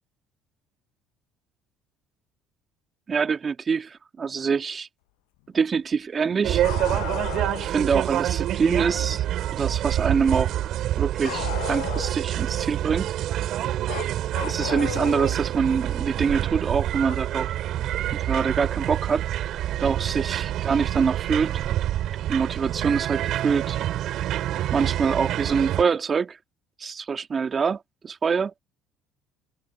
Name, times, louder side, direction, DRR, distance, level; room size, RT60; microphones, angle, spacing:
voice 1, 3.1-4.9 5.5-6.6 7.6-9.2 9.5-10.6 11.0-13.1 14.4-17.5 18.2-21.6 22.3-23.8 24.7-26.4 26.8-28.6, right 5 dB, 35° right, 2.6 m, -25 dB
sound 1, 6.4-25.8, right 12 dB, 65° right, 5.3 m, -27 dB
Bark, 6.6-7.7 11.2-12.3 13.9-15.4 17.1-17.2 19.1-19.2 20.3-20.4, left 36 dB, 85° left, 7.4 m, -34 dB
open air
supercardioid pair, 80°, 0 cm